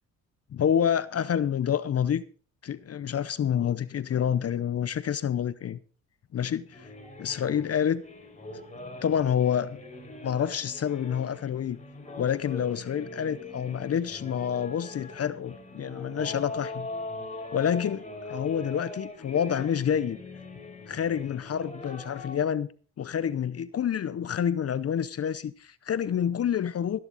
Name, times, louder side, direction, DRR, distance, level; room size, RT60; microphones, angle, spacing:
voice 1, 0.5-2.2 2.6-5.8 6.3-6.9 7.2-8.0 9.0-9.8 10.2-11.8 12.2-16.9 17.5-20.2 20.9-22.7 23.0-27.0, left 8 dB, 45° left, 0.7 m, -28 dB
sound 1, 6.7-22.4, left 2 dB, 20° left, 4.1 m, -41 dB
16.0 x 10.5 x 4.1 m
cardioid pair, 80°, 35 cm